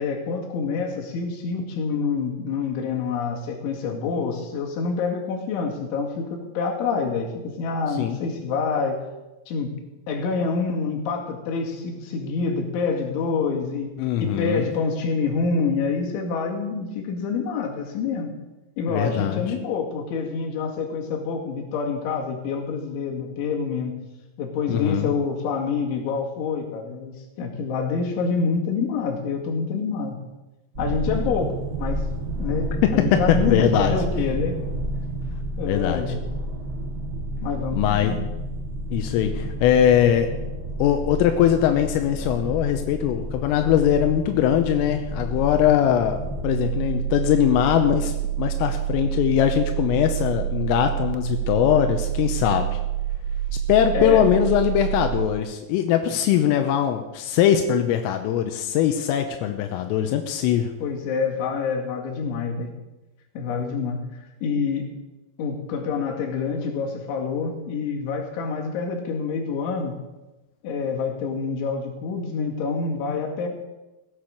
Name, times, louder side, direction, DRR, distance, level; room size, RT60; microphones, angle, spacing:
voice 1, 0.0-9.0 9.5-9.7 10.1-13.9 14.2-18.3 18.8-24.0 24.4-30.2 30.8-32.0 32.4-34.6 35.6-36.3 37.4-38.3 53.9-54.2 60.8-62.7 63.4-64.1 64.4-64.8 65.4-70.0 70.6-73.5, left 5 dB, 70° left, 1 dB, 4.3 m, -27 dB
voice 2, 14.0-14.6 18.8-19.5 24.7-25.1 32.8-34.0 35.6-36.0 37.8-38.2 38.9-40.3 40.8-52.8 53.7-60.7, left 10 dB, 90° left, 6 dB, 3.4 m, -21 dB
sound 1, 30.7-46.4, right 1 dB, 40° right, 1.2 m, -30 dB
sound 2, 46.4-55.3, right 11 dB, 80° right, 2.7 m, -27 dB
16.0 x 8.8 x 6.5 m, 1.0 s
omnidirectional pair, 5.9 m